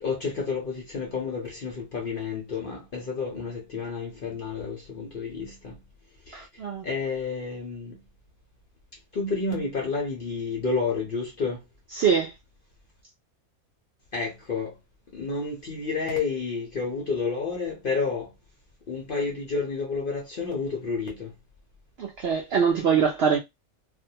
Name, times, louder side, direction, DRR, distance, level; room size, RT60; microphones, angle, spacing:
voice 1, 0.0-5.7 6.8-7.9 9.1-11.6 14.1-14.7 15.1-18.3 18.9-21.3, left 4 dB, 50° left, 0.6 m, -30 dB
voice 2, 6.3-6.8 11.9-12.3 22.0-23.4, right 6 dB, 65° right, 0.6 m, -23 dB
2.5 x 2.1 x 2.7 m
omnidirectional pair, 1.5 m